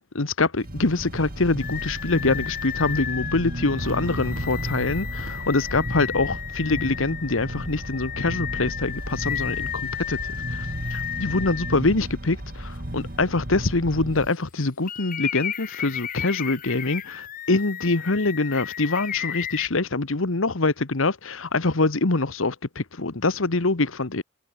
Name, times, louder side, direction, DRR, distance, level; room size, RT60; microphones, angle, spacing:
voice 1, 0.0-24.2, left 3 dB, 80° left, 1.4 m, -24 dB
sound 1, 0.6-14.3, right 1 dB, 45° right, 2.8 m, -34 dB
sound 2, 1.6-11.7 12.3-12.4 14.9-19.7, left 9 dB, 40° left, 1.2 m, -33 dB
Fireworks, 3.8-8.8, right 1 dB, 75° right, 6.7 m, -42 dB
head